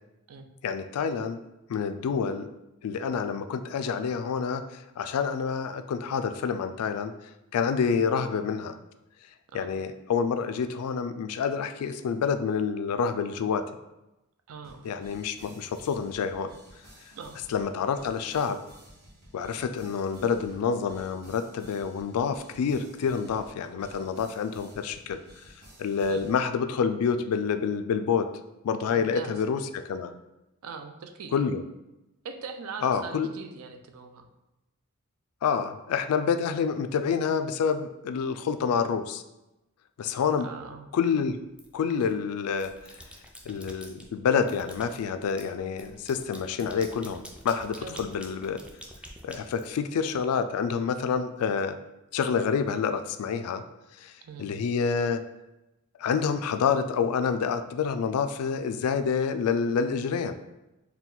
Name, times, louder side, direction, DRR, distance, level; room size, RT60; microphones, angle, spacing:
voice 1, 0.6-1.4 1.7-2.5 2.8-7.1 7.5-8.8 9.5-13.8 14.8-16.5 17.5-18.6 19.3-25.2 25.8-28.3 28.6-30.1 31.3-31.6 32.8-33.3 35.4-39.2 40.0-40.5 40.9-41.4 41.7-42.7 43.5-48.6 49.2-51.8 52.1-53.6 54.0-54.1 54.4-55.2 56.0-60.3, left 6 dB, 85° left, 10 dB, 0.3 m, -28 dB
voice 2, 14.5-14.8 17.2-17.4 26.1-26.3 28.9-29.4 30.6-31.5 32.2-34.3 36.3-36.5 40.4-40.9 47.8-48.1 54.2-54.5, right 5 dB, 75° right, 7 dB, 0.4 m, -41 dB
sound 1, 14.6-26.4, right 1 dB, 50° right, 1.3 m, -53 dB
sound 2, 41.6-42.1 42.5-44.1 44.5-50.2, equal, 5° right, 0.3 m, -47 dB
4.3 x 2.2 x 3.8 m, 0.95 s
head